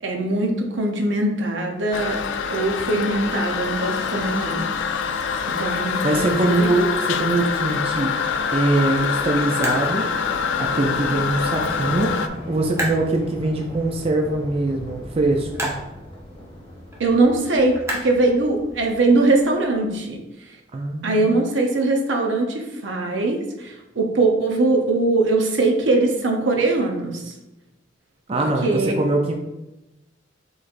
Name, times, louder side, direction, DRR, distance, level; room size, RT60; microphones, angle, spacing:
voice 1, 0.0-2.2 2.5-4.7 5.6-6.7 17.0-20.2 21.0-27.2 28.3-28.9, right 2 dB, 80° right, 2 dB, 0.8 m, -21 dB
Toilet flush, 1.9-12.3, left 6 dB, 75° left, 0.3 m, -25 dB
sound 1, 3.1-19.7, left 1 dB, 30° left, 1.0 m, -39 dB
sound 2, 5.7-18.9, equal, 15° right, 0.9 m, -37 dB
voice 2, 6.0-8.1 8.5-10.1 10.6-15.7 20.7-21.4 28.3-29.3, right 2 dB, 30° right, 2 dB, 0.4 m, -22 dB
6.2 x 3.2 x 2.5 m, 0.98 s
head